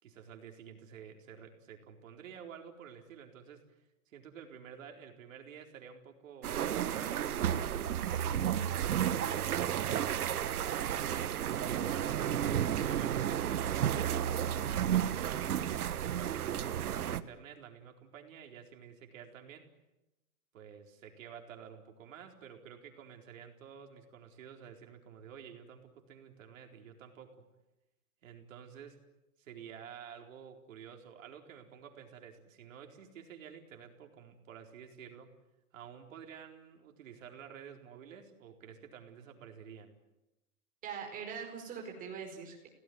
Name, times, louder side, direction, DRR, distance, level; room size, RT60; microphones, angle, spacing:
voice 1, 0.0-3.8 4.1-7.3 8.2-8.8 9.2-11.3 11.7-14.2 14.7-19.7 20.5-27.4 28.2-29.0 29.4-35.4 35.7-40.0, right 8 dB, 60° right, 4 dB, 4.4 m, -51 dB
sound 1, 6.4-17.2, right 10 dB, 85° right, 1.4 m, -32 dB
voice 2, 40.8-42.7, right 6 dB, 20° right, 3 dB, 4.9 m, -42 dB
29.5 x 18.0 x 9.5 m, 0.98 s
hypercardioid pair, 160°, 43 cm